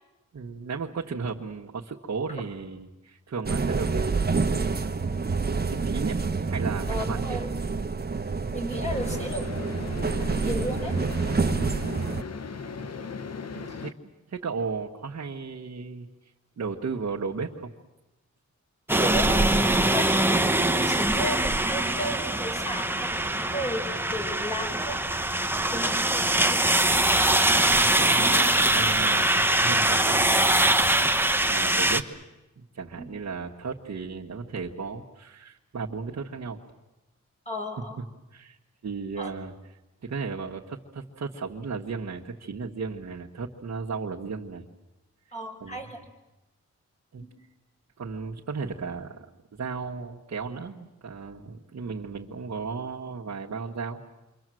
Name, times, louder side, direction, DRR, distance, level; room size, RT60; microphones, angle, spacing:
voice 1, 0.3-4.5 5.6-6.2 6.5-7.5 12.8-12.9 13.5-13.9 14.3-16.1 16.6-17.7 27.5-30.4 31.5-32.0 32.7-36.6 37.8-37.9 38.3-38.6 38.8-44.7 45.6-45.8 47.1-47.3 48.0-49.3 49.5-54.0, right 5 dB, 60° right, -2 dB, 1.7 m, -35 dB
sound 1, 3.5-12.2, right 4 dB, 35° right, 1.2 m, -28 dB
voice 2, 6.9-7.5 8.5-9.8 10.2-10.9 13.7-13.8 19.0-20.1 20.7-25.0 25.7-26.7 33.0-33.1 37.5-38.0 39.2-39.3 45.3-46.0 47.2-47.3, equal, 25° left, 2 dB, 6.0 m, -34 dB
sound 2, 8.9-13.9, left 5 dB, 60° left, 1.2 m, -37 dB
sound 3, 18.9-32.0, right 1 dB, 5° right, 1.2 m, -23 dB
27.5 x 24.0 x 7.8 m, 1.0 s
cardioid pair, 75°, 29 cm